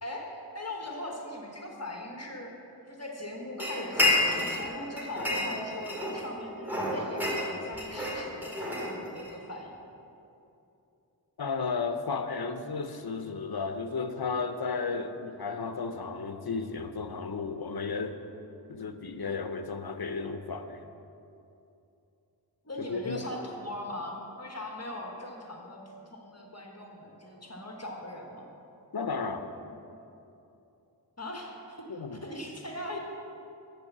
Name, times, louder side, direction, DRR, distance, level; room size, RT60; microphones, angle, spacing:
voice 1, 0.0-2.5 2.9-9.8 22.6-28.5 31.2-33.0, left 1 dB, 40° left, 0 dB, 1.2 m, -40 dB
sound 1, 3.6-4.7 5.0-6.3 6.6-9.3, left 2 dB, 5° right, 2.2 m, -29 dB
voice 2, 11.4-18.2 18.7-20.8 22.9-23.2 28.9-29.5 31.9-32.2, left 4 dB, 65° left, 8 dB, 0.7 m, -33 dB
8.0 x 6.8 x 6.7 m, 2.8 s
wide cardioid pair, 45°, 41 cm